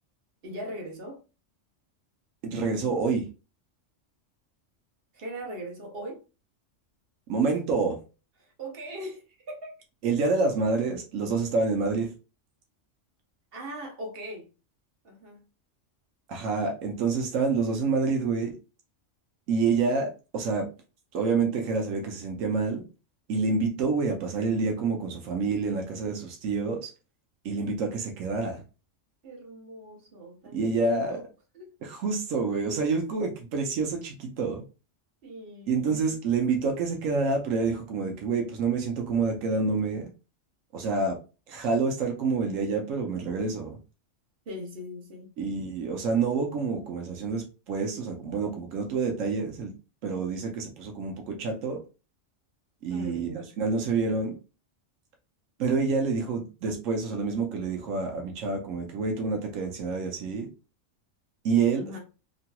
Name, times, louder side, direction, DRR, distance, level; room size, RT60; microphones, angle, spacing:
voice 1, 0.4-1.2 5.1-6.2 8.4-9.7 13.5-14.5 15.0-15.4 29.2-31.2 31.5-31.7 35.2-36.0 44.5-45.3 52.9-53.5 61.8-62.0, right 1 dB, 55° right, 1.0 m, -40 dB
voice 2, 2.4-3.3 7.3-8.0 10.0-12.1 16.3-18.5 19.5-20.7 21.1-22.9 23.3-26.9 27.4-28.6 30.5-31.2 31.8-34.6 35.7-40.1 40.7-41.2 41.5-43.8 45.4-49.7 50.0-51.8 52.8-54.3 55.6-60.5 61.4-62.0, right 4 dB, 85° right, 1.0 m, -27 dB
2.9 x 2.8 x 2.2 m
omnidirectional pair, 1.3 m